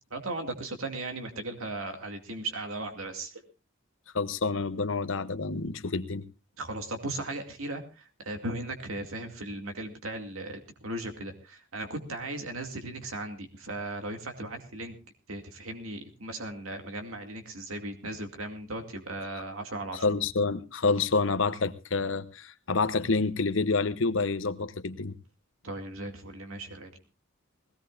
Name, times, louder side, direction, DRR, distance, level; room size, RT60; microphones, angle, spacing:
voice 1, 0.1-3.4 6.6-14.9 15.3-20.0 25.6-26.9, right 2 dB, 85° right, 4 dB, 2.3 m, -37 dB
voice 2, 4.1-6.2 20.0-25.1, left 4 dB, 70° left, 11 dB, 0.9 m, -28 dB
21.0 x 17.0 x 2.5 m, 0.31 s
head